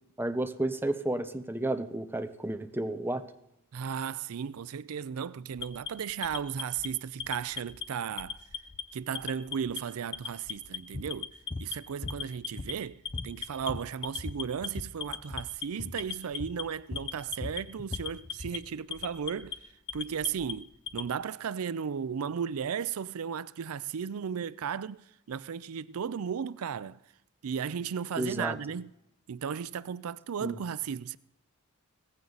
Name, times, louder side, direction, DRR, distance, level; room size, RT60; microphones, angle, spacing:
voice 1, 0.2-3.2 28.2-28.6 30.4-30.6, right 1 dB, 10° right, 0.9 m, -32 dB
voice 2, 3.7-8.4 8.9-27.0 27.4-28.9 29.3-31.2, right 7 dB, 90° right, 0.4 m, -35 dB
Alarm, 5.6-6.9 7.2-7.8 8.2-8.8 9.2-9.8 10.1-10.8 11.1-11.7 12.1-12.7 13.1-13.7 14.0-14.7 15.0-15.7 16.0-16.6 17.0-17.6 17.9-18.6 18.9-19.6 19.9-21.1, left 8 dB, 55° left, 0.9 m, -38 dB
sound 1, 10.9-11.1 11.5-11.7 12.0-12.9 13.1-15.0 15.2-15.5 15.8-16.0 16.4-16.6 16.9-18.6, left 2 dB, 25° left, 0.6 m, -39 dB
17.5 x 15.0 x 4.0 m
head